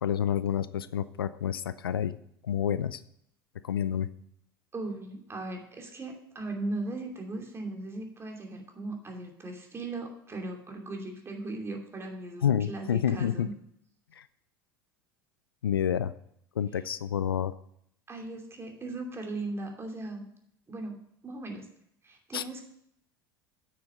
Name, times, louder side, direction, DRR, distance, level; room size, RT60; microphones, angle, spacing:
voice 1, 0.0-2.2 2.4-3.0 3.6-4.1 12.4-13.5 14.1-14.3 15.6-16.1 16.6-17.5 22.3-22.6, left 9 dB, 80° left, 16 dB, 0.4 m, -29 dB
voice 2, 4.7-13.5 18.1-20.3 20.7-21.7 22.0-22.6, right 2 dB, 20° right, 2 dB, 2.6 m, -38 dB
9.2 x 6.7 x 6.6 m, 0.71 s
figure-of-eight pair, 75°, 12 cm